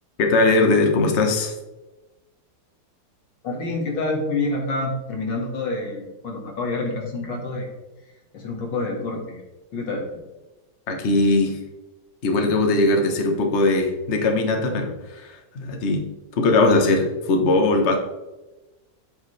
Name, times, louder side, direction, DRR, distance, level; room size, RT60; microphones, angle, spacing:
voice 1, 0.2-1.5 10.9-11.6 12.2-16.0 16.4-18.0, left 2 dB, 45° left, 3 dB, 1.4 m, -20 dB
voice 2, 3.4-7.7 8.3-9.4 9.7-10.2, left 2 dB, 85° left, 0 dB, 2.6 m, -27 dB
8.5 x 8.2 x 3.3 m, 1.1 s
omnidirectional pair, 1.9 m